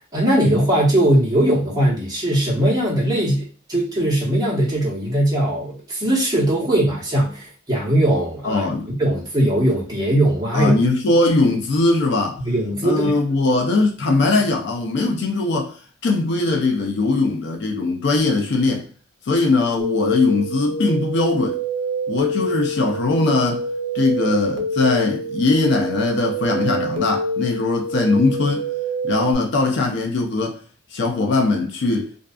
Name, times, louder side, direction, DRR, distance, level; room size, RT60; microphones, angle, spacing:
voice 1, 0.0-10.8 12.4-13.1, right 1 dB, 20° right, 0.9 m, -20 dB
voice 2, 8.4-8.9 10.5-12.4 12.8-15.8 16.0-18.9 19.3-21.6 22.1-23.6 23.9-28.7 29.0-30.6 30.9-32.1, left 3 dB, 60° left, 0.4 m, -20 dB
sound 1, 19.8-29.3, right 2 dB, 70° right, 0.5 m, -26 dB
2.5 x 2.3 x 2.3 m
head